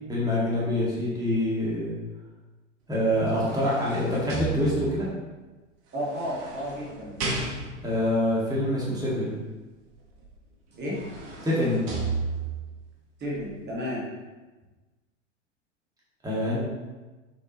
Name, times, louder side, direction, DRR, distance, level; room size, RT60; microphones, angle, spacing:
voice 1, 0.1-1.9 2.9-5.1 7.8-9.4 11.4-11.9 16.2-16.6, left 1 dB, 10° right, -7 dB, 2.0 m, -25 dB
sound 1, 2.9-5.2 6.0-8.0 10.2-10.3 10.7-12.7 13.3-13.4, right 3 dB, 55° right, 1.6 m, -34 dB
voice 2, 5.9-7.2 10.8-11.0 13.2-14.1, equal, 25° right, -5 dB, 2.0 m, -32 dB
7.0 x 5.3 x 3.1 m, 1.2 s
figure-of-eight pair, 90°, 37 cm